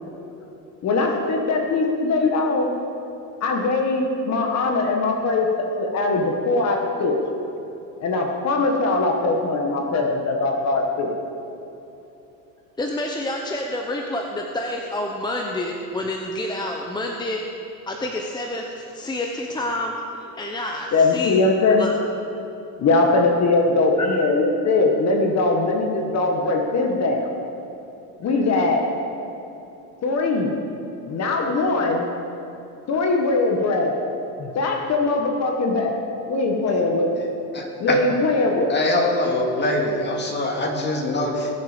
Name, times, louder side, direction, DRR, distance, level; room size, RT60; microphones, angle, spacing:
voice 1, 0.8-2.7 3.4-7.2 8.0-11.1 20.9-21.8 22.8-27.3 28.2-28.8 30.0-30.5 31.1-32.0 32.9-33.9 34.4-35.9 36.3-37.2 37.8-38.7, left 3 dB, 45° left, 2 dB, 1.6 m, -21 dB
voice 2, 12.8-17.4 17.9-21.4 21.8-22.0 23.7-24.3, left 1 dB, 10° left, 1 dB, 0.9 m, -28 dB
voice 3, 37.5-38.0 38.7-41.5, left 2 dB, 30° left, 0 dB, 2.4 m, -23 dB
20.0 x 7.3 x 5.2 m, 3.0 s
cardioid pair, 125°, 37 cm